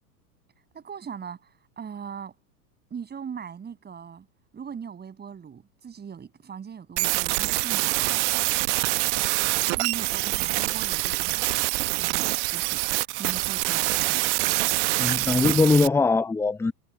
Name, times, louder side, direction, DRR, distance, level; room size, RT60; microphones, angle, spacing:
voice 1, 0.7-2.3 2.9-4.3 4.5-8.3 9.8-11.6 11.9-12.8 13.2-14.3, right 7 dB, 20° right, 7.7 m, -40 dB
sound 1, 7.0-15.9, right 24 dB, 45° right, 1.2 m, -25 dB
voice 2, 15.0-16.7, left 3 dB, 5° left, 0.9 m, -21 dB
figure-of-eight pair, 100°, 49 cm